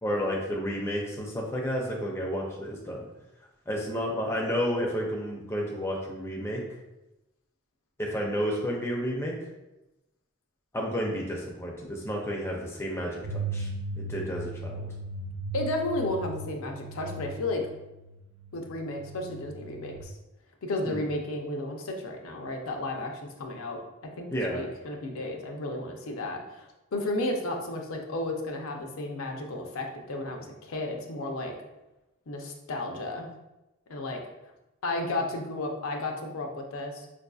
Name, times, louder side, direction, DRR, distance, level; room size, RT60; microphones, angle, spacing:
voice 1, 0.0-3.1 3.7-6.6 8.0-9.3 10.7-13.7 14.0-14.8 20.8-21.0 24.3-24.6, equal, 10° left, -2 dB, 0.4 m, -31 dB
sound 1, 13.2-20.0, right 2 dB, 80° right, 0.6 m, -38 dB
voice 2, 15.5-17.6 18.5-20.2 20.6-23.8 24.2-31.5 32.3-33.3 33.9-34.2 34.8-37.1, left 2 dB, 85° left, 2 dB, 0.5 m, -33 dB
4.6 x 2.6 x 2.3 m, 0.97 s
head